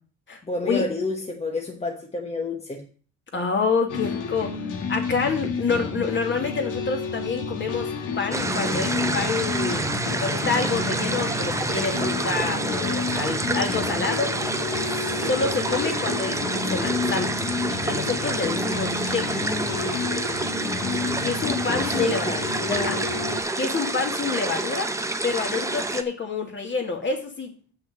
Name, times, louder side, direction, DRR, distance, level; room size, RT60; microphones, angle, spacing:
voice 1, 0.4-2.9 15.1-15.3 19.3-20.0 21.8-23.1, left 2 dB, 20° left, 1.2 m, -29 dB
voice 2, 3.3-4.6 4.9-7.9 8.2-9.8 10.2-14.4 15.1-17.4 17.8-19.5 21.2-22.3 22.7-23.0 23.6-24.9 25.2-27.5, left 4 dB, 35° left, 2.3 m, -27 dB
sound 1, 3.9-23.4, left 5 dB, 70° left, 1.9 m, -30 dB
sound 2, 8.3-26.0, right 2 dB, 10° right, 0.8 m, -28 dB
6.7 x 6.4 x 7.5 m
cardioid pair, 110°, 33 cm